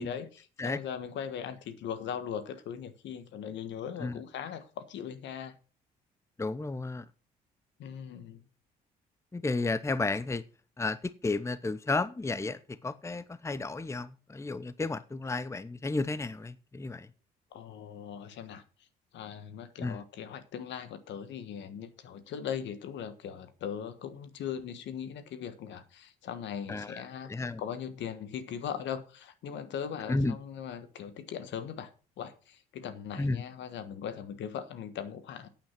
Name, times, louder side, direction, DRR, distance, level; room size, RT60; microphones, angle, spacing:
voice 1, 0.0-5.6 7.8-8.4 17.5-18.6 19.1-27.3 27.6-31.9 32.2-35.5, left 8 dB, 65° left, 1.4 m, -39 dB
voice 2, 6.4-7.0 9.3-10.4 10.8-17.1 19.8-20.0 26.7-27.0 27.3-27.6 30.1-30.4 33.2-33.4, left 3 dB, 15° left, 0.7 m, -32 dB
8.8 x 8.8 x 5.9 m
hypercardioid pair, 55°, 20 cm